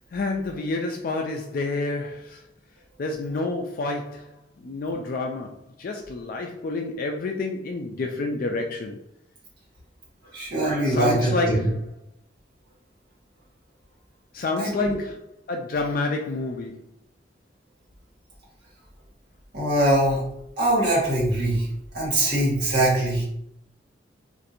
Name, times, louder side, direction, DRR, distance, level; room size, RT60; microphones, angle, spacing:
voice 1, 0.1-2.4 3.0-4.3 4.6-9.0 10.9-11.7 14.3-15.2 15.5-16.8, left 2 dB, 50° left, 0.4 m, -28 dB
voice 2, 10.3-11.3 11.6-11.7 14.6-14.9 19.5-20.2 20.6-21.7 21.9-23.2, right 1 dB, 65° right, 1.4 m, -22 dB
4.1 x 2.5 x 2.5 m
head